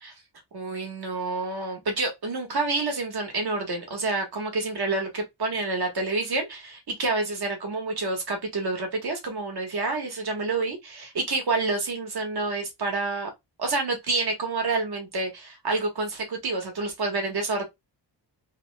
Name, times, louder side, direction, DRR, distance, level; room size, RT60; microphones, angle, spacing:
voice 1, 0.5-13.3 13.6-17.6, right 3 dB, 55° right, 1.2 m, -28 dB
3.0 x 2.1 x 3.2 m
wide cardioid pair, 160°, 45 cm